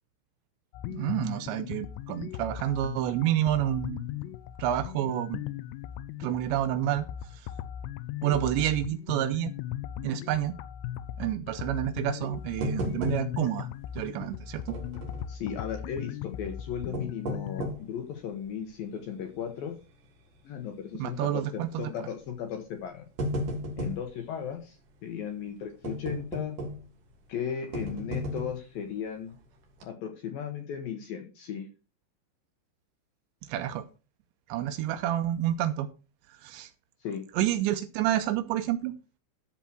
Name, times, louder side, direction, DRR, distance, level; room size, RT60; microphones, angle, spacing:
sound 1, 0.7-17.7, left 11 dB, 85° left, 2.4 m, -38 dB
voice 1, 0.9-4.1 4.6-5.4 6.2-7.0 8.2-9.5 10.0-10.6 11.2-13.7 14.0-14.6 21.0-21.9 33.5-33.8 34.5-35.9 36.4-36.7 37.4-38.9, right 12 dB, 80° right, 2.8 m, -29 dB
sound 2, 12.6-13.6 13.9-14.0 14.7-15.3 16.7-18.0 18.5-18.6 19.2-19.5 19.8-19.9 21.1-21.4 22.2-22.4 22.8-24.1 25.8-27.0 27.7-28.7 29.3-29.4 29.7-29.8, equal, 55° right, 3.0 m, -34 dB
voice 2, 15.3-19.8 20.5-23.1 23.8-24.8 25.0-26.6 27.3-29.3 29.8-31.7 37.0-37.2, left 8 dB, 70° left, 2.4 m, -36 dB
13.5 x 4.5 x 6.0 m
omnidirectional pair, 5.5 m